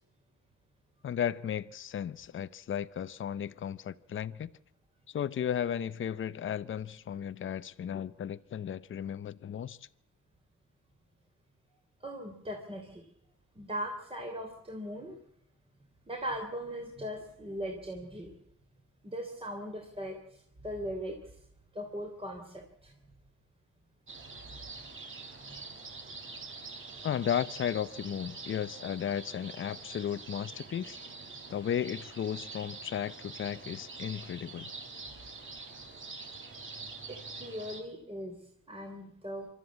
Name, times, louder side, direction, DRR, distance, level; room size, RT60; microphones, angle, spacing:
voice 1, 1.0-4.5 5.1-9.8 27.0-31.0 31.5-34.7, left 9 dB, 40° left, 0.8 m, -34 dB
voice 2, 12.0-13.1 13.5-15.2 16.1-18.3 19.0-21.2 21.7-22.9 24.5-24.9 25.4-25.6 37.1-38.4 38.7-39.5, equal, 20° right, 3.4 m, -39 dB
sound 1, 24.1-37.8, right 3 dB, 45° right, 3.4 m, -45 dB
25.0 x 13.0 x 8.5 m
cardioid pair, 90°, 30 cm